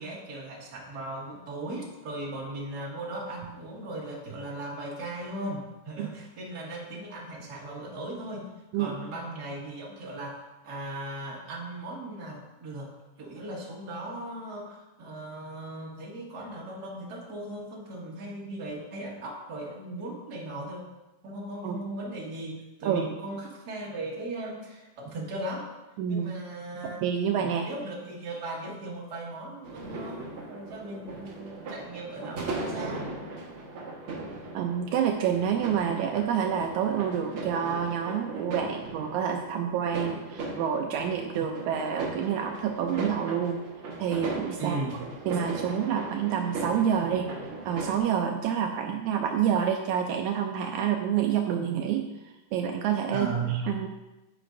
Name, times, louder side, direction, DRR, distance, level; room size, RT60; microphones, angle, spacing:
voice 1, 0.0-8.5 8.7-10.4 10.6-12.9 13.2-20.8 21.2-25.7 26.1-27.0 27.3-33.1 44.6-45.0 53.1-53.6, right 2 dB, 35° right, -4 dB, 1.8 m, -37 dB
voice 2, 26.0-26.3 26.8-27.7 34.5-43.6 44.0-44.8 45.2-47.3 47.6-53.9, right 8 dB, 85° right, 3 dB, 1.7 m, -28 dB
sound 1, 29.6-48.0, right 2 dB, 55° right, 1.7 m, -38 dB
9.8 x 8.6 x 2.6 m, 1.0 s
omnidirectional pair, 3.9 m